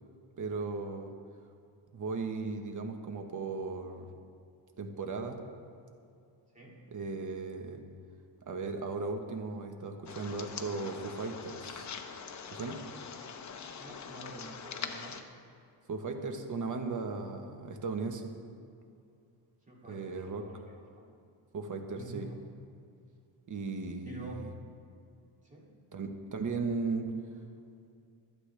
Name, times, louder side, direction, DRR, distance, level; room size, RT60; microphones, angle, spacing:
voice 1, 0.4-1.1 1.9-4.1 4.8-5.4 6.9-7.8 8.5-11.9 12.5-12.8 15.9-18.2 19.9-20.4 21.5-22.3 23.5-24.5 25.9-27.1, right 4 dB, 40° right, 5 dB, 1.3 m, -36 dB
sound 1, 10.1-15.2, left 6 dB, 35° left, 0.8 m, -43 dB
voice 2, 13.8-15.3 19.7-21.0 21.9-22.4 24.0-24.4 25.4-25.7, right 2 dB, 15° right, -3 dB, 2.4 m, -47 dB
24.5 x 8.3 x 3.4 m, 2.5 s
cardioid pair, 155°, 48 cm